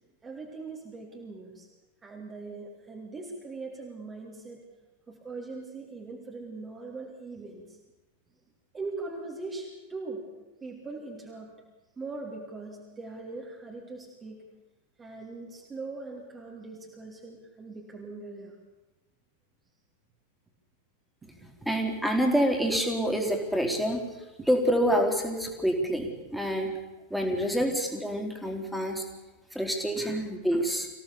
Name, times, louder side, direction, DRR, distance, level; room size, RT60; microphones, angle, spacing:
voice 1, 0.2-1.7 2.0-4.6 5.1-7.8 8.7-10.2 10.6-11.5 12.0-14.4 15.0-18.5 21.2-21.5 24.4-24.5 27.1-27.4 29.9-30.2 30.5-30.6, right 3 dB, 20° right, -1 dB, 3.3 m, -41 dB
voice 2, 21.7-24.1 24.5-26.8 27.1-29.1 29.5-30.9, equal, ahead, 2 dB, 3.9 m, -27 dB
25.5 x 17.0 x 7.0 m, 1.1 s
figure-of-eight pair, 90°, 0 cm